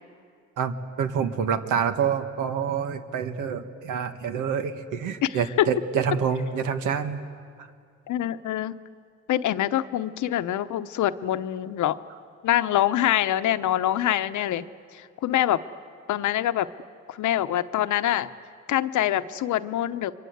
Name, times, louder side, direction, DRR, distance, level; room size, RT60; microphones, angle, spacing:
voice 1, 0.6-7.2 7.6-7.7, right 7 dB, 85° right, 8 dB, 1.6 m, -27 dB
voice 2, 5.2-5.7 8.1-8.7 9.3-12.0 12.4-14.7 14.9-15.6 16.1-16.7 17.1-18.3 18.7-20.1, left 12 dB, 75° left, 12 dB, 0.9 m, -25 dB
30.0 x 23.0 x 8.1 m, 2.3 s
cardioid pair, 90°, 30 cm